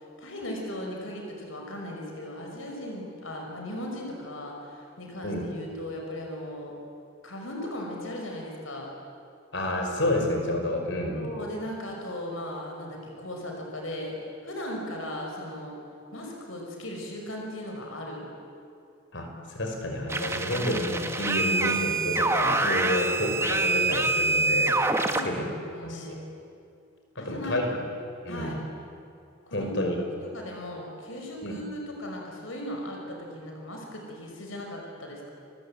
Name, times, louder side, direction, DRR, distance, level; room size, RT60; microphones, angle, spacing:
voice 1, 0.2-6.7 7.2-8.9 11.1-14.2 14.4-15.8 16.1-18.3 20.3-20.6 21.5-21.8 25.0-26.3 27.1-27.6 28.3-28.6 29.5-29.8 30.3-35.3, left 1 dB, 80° left, 0 dB, 5.7 m, -37 dB
voice 2, 9.5-11.2 19.1-19.3 19.6-24.8 25.2-25.5 25.8-26.2 27.2-27.7 28.2-28.6 29.5-30.0 31.4-31.5, left 1 dB, 60° left, 3 dB, 5.6 m, -29 dB
sound 1, 20.1-25.2, right 3 dB, 15° right, 1.3 m, -26 dB
29.5 x 21.0 x 8.9 m, 2.5 s
head